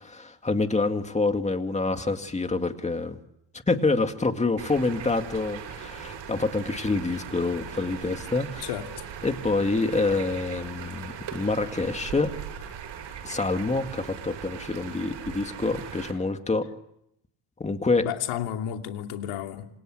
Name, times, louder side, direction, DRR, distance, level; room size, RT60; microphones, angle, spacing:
voice 1, 0.0-3.2 3.7-8.7 9.2-12.3 13.2-16.7 17.6-18.0, left 3 dB, 15° left, 2.1 m, -27 dB
sound 1, 4.6-16.1, right 8 dB, 60° right, 7.6 m, -39 dB
voice 2, 8.6-9.0 18.0-19.7, left 10 dB, 85° left, 3.0 m, -32 dB
27.5 x 26.5 x 7.9 m
cardioid pair, 130°, 49 cm